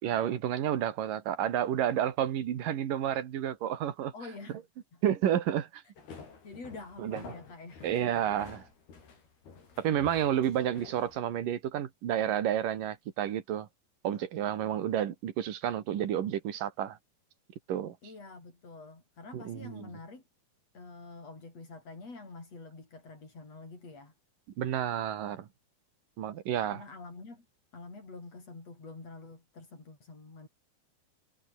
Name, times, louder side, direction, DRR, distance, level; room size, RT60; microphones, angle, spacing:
voice 1, 0.0-4.1 5.0-5.8 7.0-7.2 7.8-8.7 9.8-13.7 14.0-17.0 17.7-18.0 19.3-19.9 24.6-25.5 26.2-26.8, right 10 dB, 65° right, 3.5 m, -30 dB
voice 2, 4.1-4.6 4.9-5.0 6.4-7.8 18.0-20.2 20.7-24.1 26.7-27.5 27.7-30.5, left 3 dB, 40° left, 7.8 m, -47 dB
sound 1, 6.0-11.2, left 5 dB, 85° left, 8.0 m, -50 dB
omnidirectional pair, 4.4 m